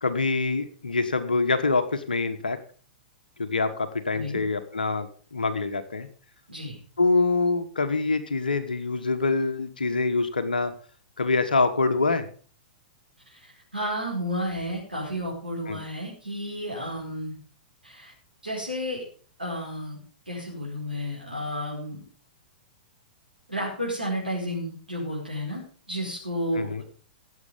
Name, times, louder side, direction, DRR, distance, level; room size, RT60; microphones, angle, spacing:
voice 1, 0.0-2.6 3.4-6.1 7.0-10.7 11.2-12.3 15.7-15.8 26.5-26.8, left 3 dB, 75° left, 11 dB, 1.3 m, -25 dB
voice 2, 4.1-4.4 6.5-6.8 13.3-13.5 13.7-17.4 17.8-18.1 18.4-19.0 19.4-20.0 20.3-22.0 23.5-26.8, equal, 90° right, -3 dB, 4.8 m, -32 dB
16.0 x 7.7 x 5.4 m, 0.42 s
figure-of-eight pair, 105°, 5 cm